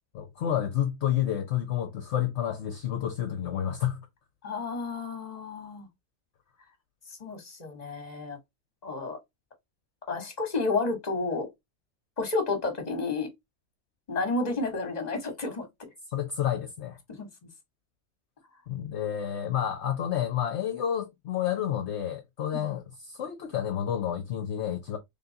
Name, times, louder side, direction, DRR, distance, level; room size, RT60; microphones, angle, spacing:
voice 1, 0.1-4.0 16.1-17.0 18.7-25.0, left 10 dB, 60° left, 0.9 m, -30 dB
voice 2, 4.4-5.9 7.2-8.4 8.8-9.2 10.1-11.5 12.2-13.3 14.1-15.7 17.2-17.3 22.5-22.6, left 3 dB, 30° left, 1.4 m, -31 dB
3.8 x 3.5 x 2.7 m
omnidirectional pair, 1.5 m